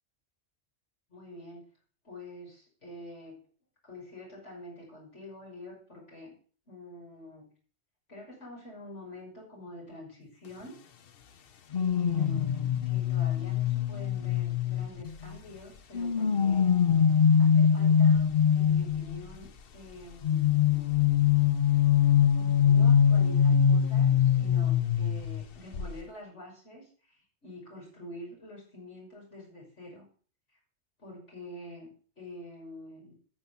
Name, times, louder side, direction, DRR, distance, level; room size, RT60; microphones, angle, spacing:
voice 1, 1.1-1.6 2.0-3.4 3.8-6.3 6.7-7.5 8.1-10.7 11.3-16.8 17.1-20.8 22.3-30.1 30.5-30.6 31.0-33.1, left 1 dB, 85° left, -3 dB, 6.5 m, -47 dB
sound 1, 11.7-15.3 15.9-19.2 20.2-25.5 25.7-26.0, left 8 dB, 55° left, 1.0 m, -23 dB
18.5 x 7.5 x 7.0 m, 0.43 s
omnidirectional pair, 1.2 m